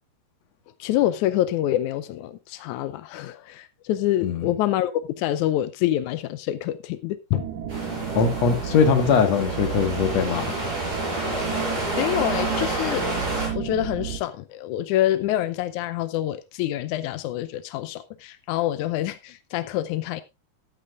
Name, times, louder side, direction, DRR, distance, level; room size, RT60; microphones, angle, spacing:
voice 1, 0.8-7.5 12.0-13.1 13.5-20.2, left 13 dB, 85° left, 1.7 m, -26 dB
sound 1, 7.3-14.2, right 9 dB, 60° right, 3.2 m, -32 dB
sound 2, 7.7-13.5, right 1 dB, 25° right, 5.9 m, -30 dB
voice 2, 8.1-10.7, left 6 dB, 50° left, 2.5 m, -21 dB
14.0 x 12.0 x 2.5 m
omnidirectional pair, 4.4 m